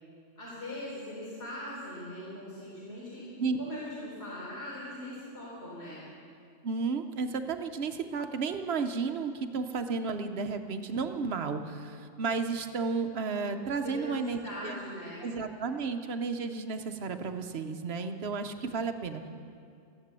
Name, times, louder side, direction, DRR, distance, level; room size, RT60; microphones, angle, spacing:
voice 1, 0.4-6.0 13.8-15.3, left 1 dB, 55° left, -7 dB, 4.2 m, -41 dB
voice 2, 6.6-14.8 15.2-19.3, right 4 dB, 55° right, 7 dB, 1.0 m, -33 dB
14.5 x 10.5 x 7.5 m, 2.4 s
omnidirectional pair, 1.3 m